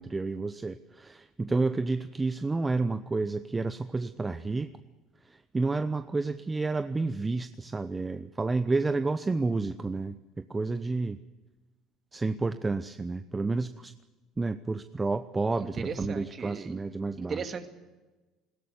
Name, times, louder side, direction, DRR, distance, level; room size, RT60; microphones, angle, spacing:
voice 1, 0.0-4.7 5.5-10.2 10.5-11.2 12.1-13.9 14.4-17.4, right 3 dB, 20° right, 11 dB, 0.9 m, -30 dB
voice 2, 15.6-16.8 17.2-17.7, right 5 dB, 40° right, 8 dB, 2.3 m, -36 dB
20.0 x 17.0 x 9.7 m, 1.2 s
supercardioid pair, 95°, 0 cm